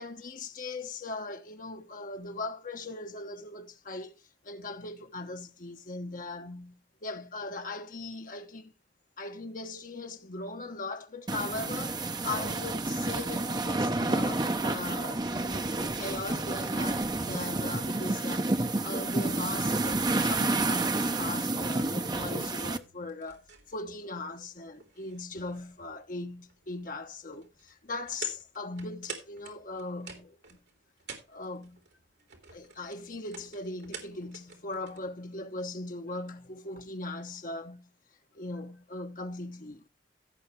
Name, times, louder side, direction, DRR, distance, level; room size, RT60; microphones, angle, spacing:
voice 1, 0.0-4.2 4.4-8.7 9.2-23.4 23.7-30.4 31.3-31.8 32.5-37.9 38.3-39.9, left 2 dB, 50° left, 1.2 m, -39 dB
sound 1, 11.3-22.8, right 2 dB, 25° right, 0.8 m, -30 dB
sound 2, 21.8-35.1, right 5 dB, 70° right, 3.1 m, -50 dB
16.0 x 6.5 x 3.2 m
head